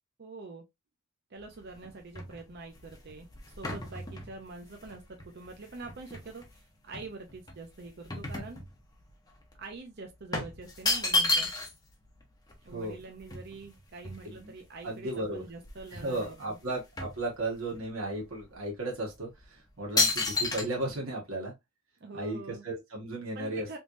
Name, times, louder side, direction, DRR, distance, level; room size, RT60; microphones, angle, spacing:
voice 1, 0.2-0.6 1.3-3.3 3.6-8.7 9.6-11.5 12.6-16.6 22.0-22.6 23.3-23.8, right 3 dB, 55° right, 0.6 m, -45 dB
sound 1, 1.4-6.5 6.9-9.1 9.4-9.6 10.3-11.9 12.2-12.3 12.5-14.7 15.2-15.3 15.6-16.3 16.6-17.8 18.4-18.6 19.2-19.4 20.0-20.6, left 2 dB, 20° left, 0.8 m, -32 dB
voice 2, 14.8-15.4 15.9-21.5 22.1-23.7, right 2 dB, 90° right, 1.5 m, -35 dB
3.4 x 3.1 x 2.5 m
head